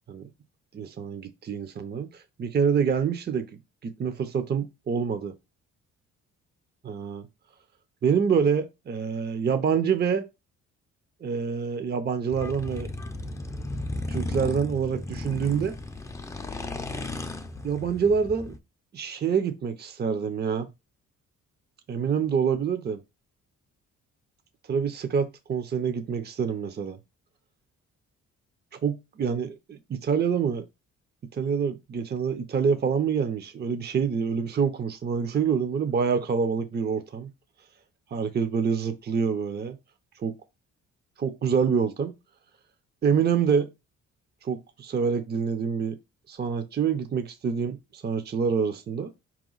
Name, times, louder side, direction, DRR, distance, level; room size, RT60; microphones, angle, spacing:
voice 1, 0.7-3.5 3.8-5.3 6.8-7.3 8.0-10.2 11.2-12.9 14.1-15.7 17.6-18.6 18.9-20.7 21.9-23.0 24.7-27.0 28.7-30.6 31.3-37.3 38.1-39.8 40.2-40.4 41.2-42.1 43.0-43.7 44.4-46.0 46.3-49.1, right 6 dB, 35° right, 0.6 m, -26 dB
sound 1, 12.3-18.6, left 2 dB, 10° left, 0.5 m, -35 dB
4.4 x 3.0 x 3.9 m
cardioid pair, 90°, 30 cm